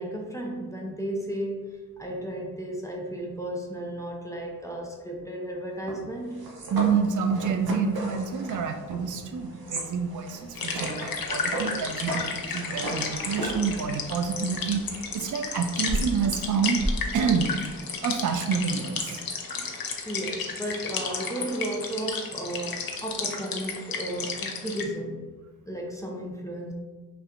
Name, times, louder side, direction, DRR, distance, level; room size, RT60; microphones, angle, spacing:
voice 1, 0.0-6.5 20.1-25.3 25.7-26.7, right 1 dB, 10° left, -1 dB, 0.7 m, -34 dB
sound 1, 5.9-15.2 15.8-16.9, right 1 dB, 80° right, 0.8 m, -35 dB
voice 2, 6.7-17.5 18.0-19.2, right 6 dB, 60° right, 6 dB, 0.5 m, -28 dB
sound 2, 10.5-24.8, left 5 dB, 70° left, 0.7 m, -33 dB
4.3 x 3.3 x 2.5 m, 1.3 s
cardioid pair, 50°, 36 cm